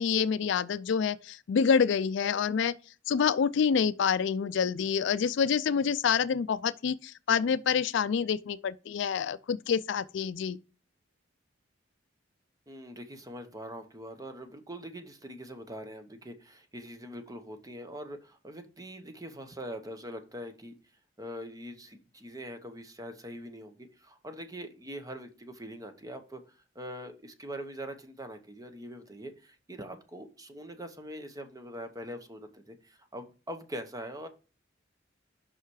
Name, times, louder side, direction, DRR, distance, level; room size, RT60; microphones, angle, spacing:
voice 1, 0.0-2.7 3.1-10.6, left 6 dB, 65° left, 0.4 m, -27 dB
voice 2, 12.7-20.7 21.2-34.3, equal, 20° right, 0.9 m, -43 dB
5.7 x 5.6 x 4.7 m
head